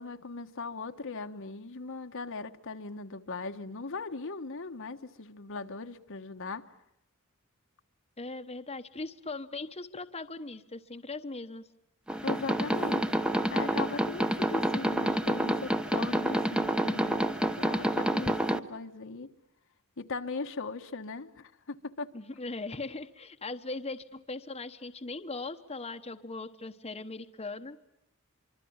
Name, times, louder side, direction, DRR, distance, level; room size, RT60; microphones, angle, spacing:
voice 1, 0.0-6.6 12.2-13.1 13.5-19.3 20.0-22.1, left 4 dB, 60° left, 6 dB, 1.3 m, -39 dB
voice 2, 8.2-11.7 22.1-27.8, left 3 dB, 30° left, 6 dB, 1.1 m, -39 dB
sound 1, 12.1-18.6, right 1 dB, 5° right, 1.0 m, -28 dB
25.0 x 25.0 x 8.7 m, 0.82 s
head